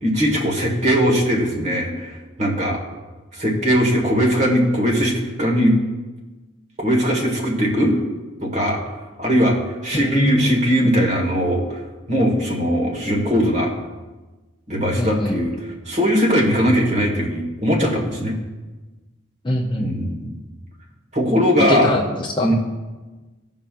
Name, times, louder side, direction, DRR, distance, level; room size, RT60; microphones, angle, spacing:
voice 1, 0.0-2.8 3.3-5.8 6.8-8.0 8.4-8.8 9.2-11.8 12.1-13.7 14.7-15.5 15.8-18.3 19.8-20.3 21.1-21.9 22.4-22.5, equal, 35° right, -1 dB, 1.5 m, -19 dB
voice 2, 9.9-10.5 10.8-10.9 15.0-15.4 19.4-20.0 21.7-22.5, left 1 dB, 25° left, 1 dB, 0.6 m, -23 dB
16.0 x 5.5 x 2.5 m, 1.2 s
head